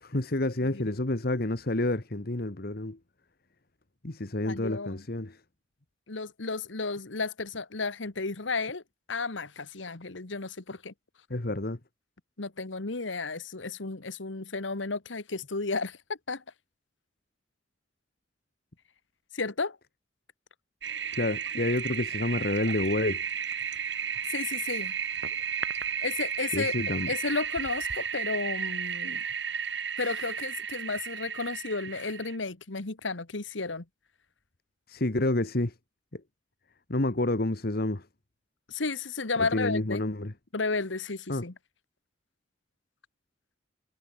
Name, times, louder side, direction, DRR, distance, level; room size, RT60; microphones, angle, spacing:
voice 1, 0.0-3.0 4.0-5.4 11.3-11.8 21.1-23.2 26.5-27.1 34.9-35.7 36.1-36.2 36.9-38.1 39.4-40.3 41.3-41.4, left 2 dB, 55° left, 1.5 m, -29 dB
voice 2, 4.4-5.0 6.1-8.8 9.1-10.9 12.4-16.4 19.3-19.8 24.3-24.9 26.0-26.7 27.1-29.2 30.0-33.8 38.7-40.0 40.5-41.5, left 3 dB, 90° left, 1.6 m, -33 dB
Toilet flush, 20.8-32.4, right 7 dB, 70° right, 6.1 m, -33 dB
head